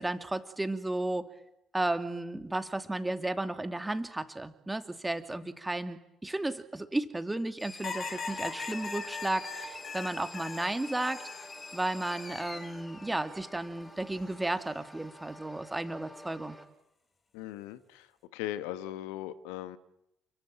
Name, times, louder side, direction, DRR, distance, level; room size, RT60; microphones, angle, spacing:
voice 1, 0.0-1.3 1.7-11.3 11.7-16.6, right 2 dB, 10° right, 2.7 m, -33 dB
sound 1, 7.6-14.0, left 3 dB, 30° left, 3.9 m, -46 dB
sound 2, 7.8-11.5 12.0-12.8 14.2-14.6, left 5 dB, 45° left, 3.3 m, -41 dB
sound 3, 8.0-16.6, left 1 dB, 10° left, 5.9 m, -51 dB
voice 2, 17.3-18.1 18.3-19.8, left 13 dB, 65° left, 1.4 m, -38 dB
30.0 x 22.5 x 8.8 m
figure-of-eight pair, 50°, 0 cm